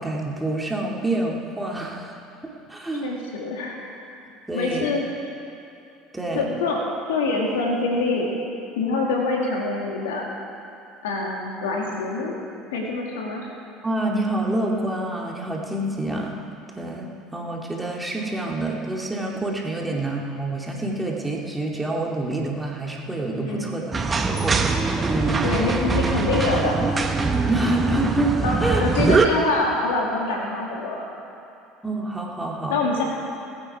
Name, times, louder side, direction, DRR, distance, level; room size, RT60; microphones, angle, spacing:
voice 1, 0.0-2.2 2.7-3.2 4.5-4.9 6.1-6.5 13.8-16.4 16.8-23.9 24.2-24.7 25.1-25.4 27.5-29.1 31.8-32.8, right 2 dB, 10° right, -2 dB, 2.6 m, -27 dB
voice 2, 3.0-3.8 4.5-5.1 6.3-6.8 7.1-8.3 8.8-10.2 11.0-12.4 12.7-13.5 19.9-20.0 23.4-23.7 25.4-26.8 28.4-31.0 32.7-33.0, left 3 dB, 80° left, -1 dB, 2.5 m, -25 dB
sound 1, 23.9-29.3, right 4 dB, 25° right, 1.3 m, -22 dB
21.0 x 9.0 x 4.8 m, 2.7 s
hypercardioid pair, 70°, 0 cm